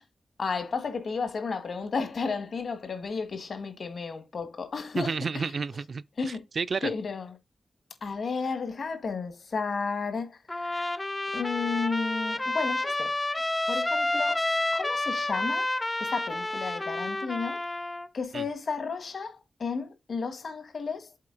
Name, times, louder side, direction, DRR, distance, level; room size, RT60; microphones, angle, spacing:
voice 1, 0.4-5.5 6.2-6.4 6.8-7.3 8.0-10.9 11.3-13.1 13.7-14.5 14.7-15.7 16.0-17.6 18.1-21.1, left 5 dB, 60° left, 1.6 m, -33 dB
voice 2, 5.0-6.9 18.3-18.4, right 5 dB, 55° right, 0.3 m, -31 dB
Trumpet, 10.5-18.1, left 2 dB, 15° left, 0.4 m, -30 dB
7.5 x 4.4 x 3.8 m
wide cardioid pair, 165°, 0 cm